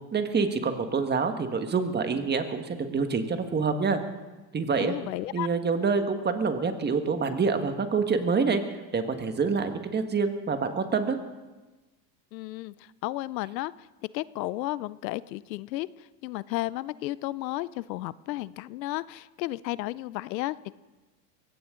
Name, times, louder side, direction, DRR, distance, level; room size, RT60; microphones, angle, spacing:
voice 1, 0.1-4.0 4.5-4.9 5.3-8.6 8.9-11.2, right 5 dB, 20° right, 7 dB, 1.6 m, -26 dB
voice 2, 4.8-5.5 12.3-13.7 14.1-20.7, left 17 dB, 85° left, 19 dB, 0.7 m, -33 dB
22.0 x 17.0 x 3.8 m, 1.2 s
supercardioid pair, 115°, 49 cm